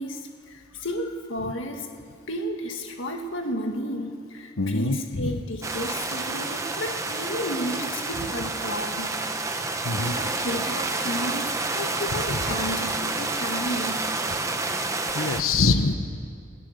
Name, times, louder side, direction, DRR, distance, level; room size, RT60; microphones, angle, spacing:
voice 1, 0.0-1.9 2.3-9.7 10.0-14.2, equal, 65° left, 3 dB, 1.9 m, -33 dB
voice 2, 4.6-5.4 9.8-10.2 12.1-12.4 15.1-15.9, left 3 dB, 85° left, 8 dB, 1.1 m, -24 dB
sound 1, 5.6-15.4, right 3 dB, 15° right, 0.9 m, -29 dB
29.5 x 18.5 x 6.8 m, 2.3 s
head